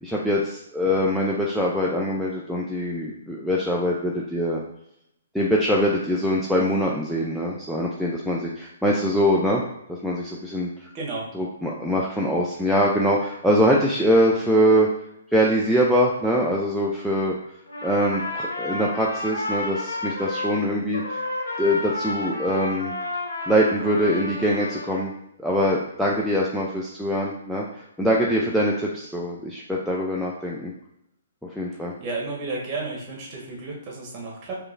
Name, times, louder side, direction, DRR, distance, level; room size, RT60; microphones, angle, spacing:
voice 1, 0.0-4.6 5.3-9.6 9.9-10.7 11.3-14.9 15.3-17.3 17.8-21.2 21.6-22.9 23.5-25.1 25.4-30.7 31.6-31.9, equal, ahead, -5 dB, 0.4 m, -23 dB
voice 2, 10.9-11.3 32.0-34.6, right 3 dB, 30° right, -3 dB, 1.5 m, -32 dB
Trumpet, 17.7-20.6 20.9-25.0, left 2 dB, 75° left, 1.1 m, -31 dB
4.6 x 3.1 x 2.6 m, 0.79 s
figure-of-eight pair, 130°, 0 cm